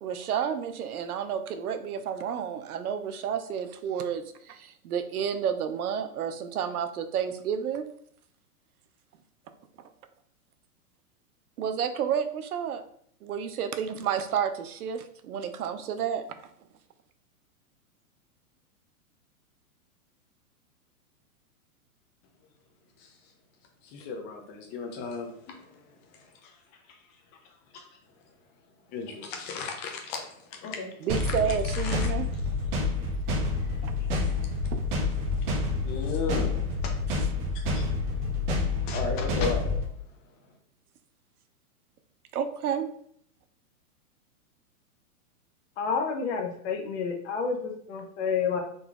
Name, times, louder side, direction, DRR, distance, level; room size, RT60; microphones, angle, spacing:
voice 1, 0.0-7.9 11.6-12.8 13.2-16.4 31.0-32.3 33.8-34.0 34.7-34.8 42.3-42.9, right 8 dB, 85° right, 9 dB, 0.7 m, -30 dB
voice 2, 23.8-26.6 26.9-27.0 27.7-27.8 28.9-30.9 31.2-31.4 31.7-32.1 33.5-34.6 35.2-40.0, left 4 dB, 25° left, 2 dB, 0.6 m, -37 dB
sound 1, 31.1-39.9, left 3 dB, 35° right, 0.7 m, -28 dB
voice 3, 45.8-48.6, left 5 dB, 50° left, 3 dB, 1.0 m, -29 dB
3.9 x 2.9 x 3.5 m, 0.65 s
hypercardioid pair, 150°, 44 cm